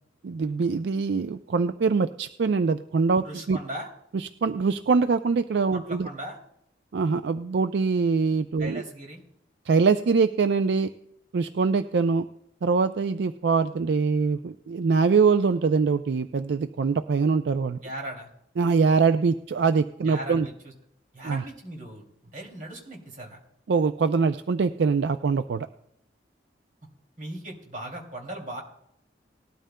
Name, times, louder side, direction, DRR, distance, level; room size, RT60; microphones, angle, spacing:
voice 1, 0.2-3.6 4.1-6.1 6.9-8.8 9.7-10.9 11.3-12.3 12.6-17.8 18.6-20.5 21.2-21.4 23.7-25.7, right 5 dB, 70° right, 10 dB, 0.4 m, -23 dB
voice 2, 3.2-3.9 5.7-6.4 8.6-9.2 17.8-18.3 20.0-20.7 21.1-23.4 27.2-28.6, right 1 dB, 45° right, 0 dB, 2.6 m, -38 dB
19.0 x 12.5 x 2.2 m, 0.78 s
head